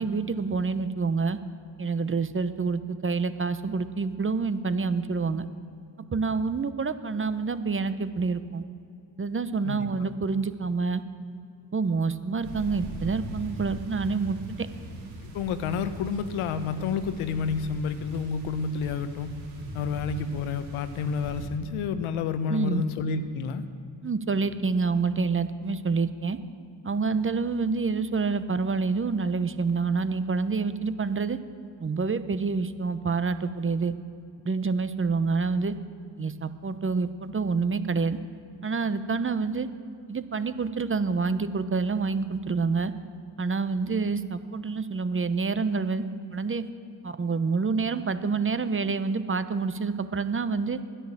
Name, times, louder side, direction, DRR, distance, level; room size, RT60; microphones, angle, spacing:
voice 1, 0.0-1.4 1.8-5.4 6.1-8.6 9.2-11.0 11.7-14.7 22.5-22.8 24.0-26.4 26.8-31.4 31.8-33.9 34.4-35.7 36.2-38.2 38.6-39.7 40.1-42.9 43.4-46.0 46.3-46.7 47.0-50.8, right 4 dB, 25° right, 12 dB, 0.9 m, -27 dB
voice 2, 9.6-10.1 15.3-19.3 19.7-23.6, left 5 dB, 75° left, 11 dB, 1.1 m, -30 dB
sound 1, 12.4-21.5, right 1 dB, 85° right, 4.1 m, -40 dB
12.5 x 10.0 x 7.4 m, 2.6 s
supercardioid pair, 55°, 50 cm